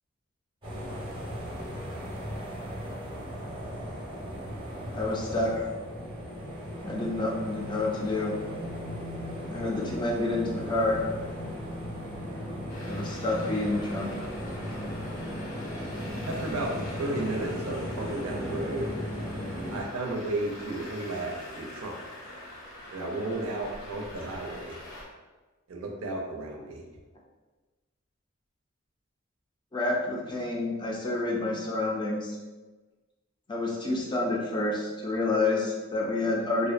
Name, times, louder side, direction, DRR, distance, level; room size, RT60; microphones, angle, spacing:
sound 1, 0.6-19.8, equal, 25° right, 0.6 m, -36 dB
voice 1, 4.9-5.5 6.8-8.3 9.5-11.0 12.8-14.1 29.7-32.4 33.5-36.7, left 2 dB, 20° left, -2 dB, 0.4 m, -29 dB
Traffic noise roadway noise, 12.7-25.0, left 1 dB, 90° left, 0.5 m, -45 dB
voice 2, 16.3-18.9 19.7-22.0 22.9-24.8 25.7-26.8, right 2 dB, 85° right, 1 dB, 0.5 m, -33 dB
2.5 x 2.0 x 2.4 m, 1.2 s
head